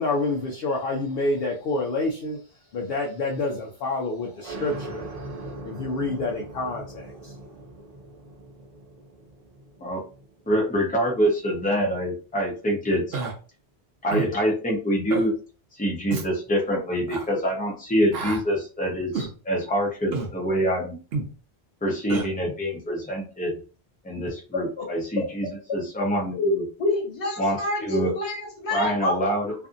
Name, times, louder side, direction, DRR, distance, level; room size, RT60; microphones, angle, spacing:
voice 1, 0.0-7.3, left 2 dB, 65° left, 0 dB, 0.8 m, -28 dB
sound 1, 4.4-11.7, right 2 dB, 50° right, 0.5 m, -40 dB
voice 2, 10.5-13.2 14.0-15.3 15.8-21.0 21.8-23.6 24.0-26.6 27.4-28.1 28.7-29.5, equal, 10° left, -1 dB, 0.6 m, -25 dB
Human voice, 13.1-13.3 14.1-14.3 15.1-15.3 16.1-16.3 17.1-17.3 18.1-18.4 19.1-19.3 20.1-20.3 21.1-21.3 22.1-22.3, right 4 dB, 70° right, 0.8 m, -29 dB
voice 3, 24.5-24.8 26.3-26.5 26.8-29.2, left 2 dB, 85° left, 0 dB, 1.3 m, -27 dB
2.6 x 2.5 x 2.4 m, 0.37 s
omnidirectional pair, 1.1 m